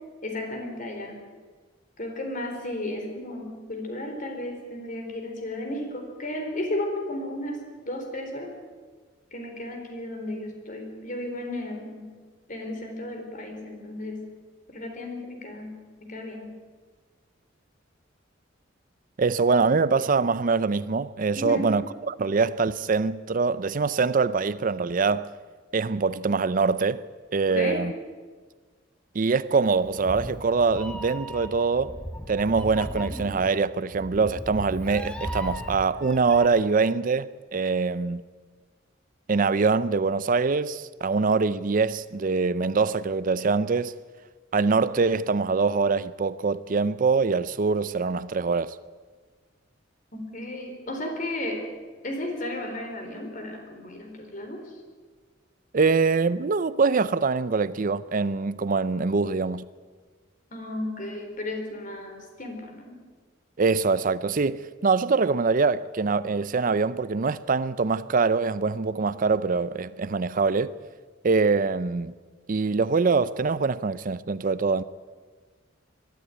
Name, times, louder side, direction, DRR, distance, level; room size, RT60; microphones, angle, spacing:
voice 1, 0.2-1.2 2.0-8.5 9.3-12.1 12.5-14.2 14.7-16.5 21.4-21.7 27.5-27.8 50.1-51.7 52.0-54.6 60.5-63.0, left 1 dB, 45° left, 4.1 m, -34 dB
voice 2, 19.2-25.3 25.7-27.0 27.3-27.9 29.1-32.0 32.3-38.2 39.3-43.9 44.5-48.8 55.7-59.6 63.6-70.7 71.2-72.1 72.5-74.8, right 4 dB, 45° right, 0.5 m, -24 dB
Meow, 29.8-36.5, equal, 5° left, 1.4 m, -37 dB
22.0 x 13.0 x 9.2 m
head